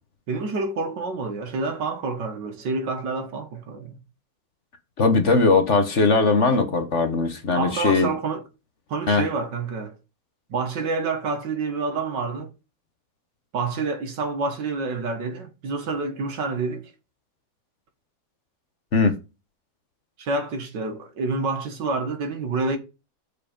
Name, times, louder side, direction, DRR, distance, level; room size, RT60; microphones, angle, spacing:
voice 1, 0.3-4.0 7.5-8.4 8.9-10.0 10.5-12.5 13.5-16.9 20.2-22.8, right 3 dB, 65° right, 2.0 m, -28 dB
voice 2, 5.0-8.1 9.1-9.3 18.9-19.1, left 3 dB, 45° left, 1.3 m, -19 dB
7.5 x 5.1 x 5.1 m
omnidirectional pair, 2.0 m